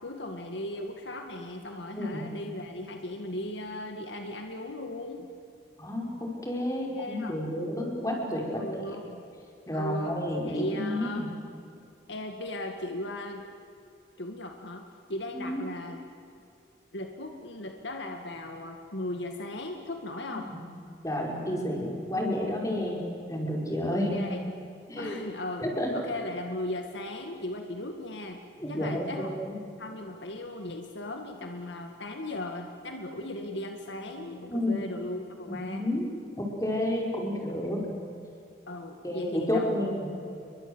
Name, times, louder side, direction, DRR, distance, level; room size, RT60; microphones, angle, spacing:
voice 1, 0.0-5.3 6.9-7.5 8.6-9.2 9.7-10.2 10.4-11.4 12.1-13.5 14.2-16.0 16.9-20.5 24.1-24.4 25.0-25.7 25.9-28.4 28.7-29.3 29.8-35.8 38.7-39.8, left 1 dB, 75° left, 4 dB, 2.1 m, -37 dB
voice 2, 1.9-2.3 5.8-8.6 9.7-11.2 15.3-15.6 20.4-20.6 21.0-24.2 24.9-25.1 25.6-25.9 28.6-29.3 34.5-34.8 35.5-36.1 36.4-37.9 39.0-40.1, left 1 dB, 15° left, -1 dB, 5.2 m, -30 dB
29.5 x 23.0 x 8.0 m, 2.6 s
head